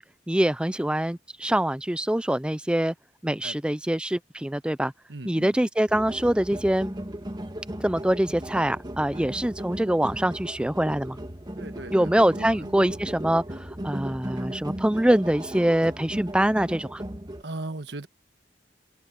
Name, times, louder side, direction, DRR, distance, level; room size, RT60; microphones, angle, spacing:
voice 1, 0.0-2.9 3.2-4.9 5.3-6.9 7.8-11.2 11.9-17.0, right 1 dB, 5° right, 0.5 m, -24 dB
voice 2, 5.1-5.5 9.2-9.5 11.6-13.0 17.4-18.1, right 2 dB, 70° right, 1.3 m, -38 dB
sound 1, 5.9-17.4, right 1 dB, 25° right, 1.7 m, -37 dB
head